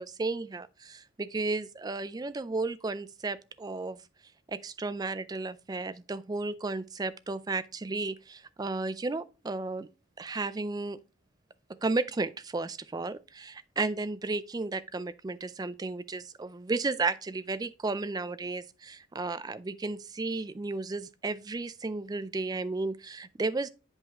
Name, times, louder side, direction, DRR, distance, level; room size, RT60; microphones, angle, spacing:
voice 1, 0.0-4.0 4.5-9.9 10.2-11.0 11.8-23.7, right 3 dB, 20° right, 0.3 m, -33 dB
8.6 x 5.3 x 3.5 m
head